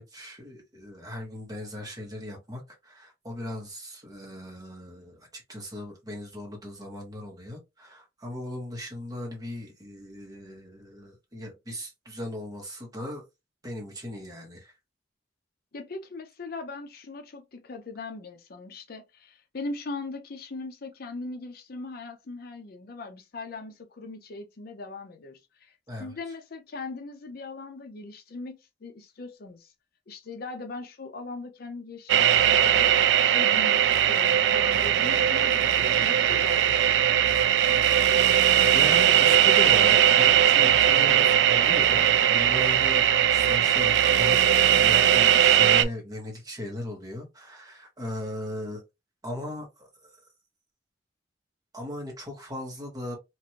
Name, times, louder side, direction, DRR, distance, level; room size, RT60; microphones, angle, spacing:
voice 1, 0.0-13.2 13.6-14.7 25.9-26.1 38.7-42.0 42.3-48.8 49.2-50.2 51.7-53.2, left 1 dB, 20° right, 1.1 m, -38 dB
voice 2, 15.7-25.7 26.0-29.7 30.1-32.9 33.2-36.9, left 3 dB, 55° left, 0.5 m, -39 dB
sound 1, 32.1-45.8, right 10 dB, 65° right, 0.3 m, -20 dB
3.1 x 2.5 x 2.7 m
head